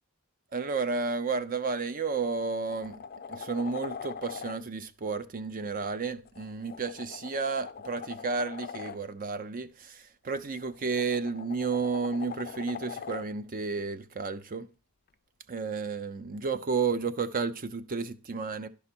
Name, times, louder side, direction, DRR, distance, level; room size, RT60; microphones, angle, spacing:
voice 1, 0.5-3.0 3.3-14.7 15.5-18.7, right 4 dB, 40° right, 0.5 m, -32 dB
sound 1, 1.7-1.9 2.3-4.6 6.2-9.0 10.5-13.3 15.6-15.7, left 6 dB, 45° left, 0.5 m, -42 dB
11.0 x 5.6 x 4.3 m
head